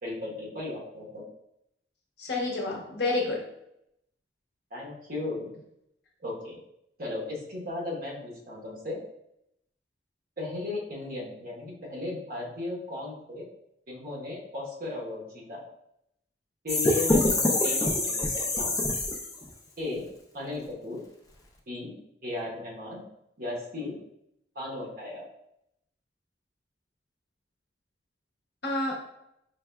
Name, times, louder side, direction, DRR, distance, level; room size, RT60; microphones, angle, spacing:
voice 1, 0.0-1.2 4.7-5.6 6.2-6.6 7.0-9.0 10.4-13.5 13.9-15.6 16.6-18.7 19.8-20.1 20.3-21.0 21.7-23.0 23.4-24.0 24.5-25.3, left 2 dB, 50° right, -3 dB, 1.1 m, -36 dB
voice 2, 2.2-3.5 28.6-28.9, left 2 dB, 65° left, -1 dB, 0.9 m, -29 dB
sound 1, 16.7-19.5, left 2 dB, 20° left, 0.5 m, -25 dB
4.6 x 3.2 x 2.3 m, 0.79 s
head